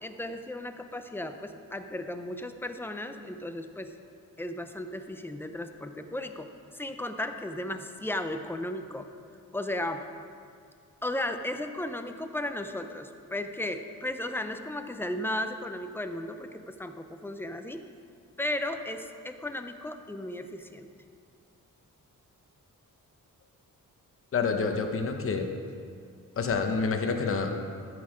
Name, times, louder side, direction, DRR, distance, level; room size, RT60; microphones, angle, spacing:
voice 1, 0.0-3.9 4.4-9.1 9.5-10.0 11.0-17.8 18.4-20.9, left 1 dB, 5° left, 7 dB, 0.4 m, -35 dB
voice 2, 24.3-25.5 26.4-27.6, left 4 dB, 40° left, 4 dB, 0.9 m, -28 dB
13.5 x 6.3 x 4.9 m, 2.3 s
wide cardioid pair, 165°, 33 cm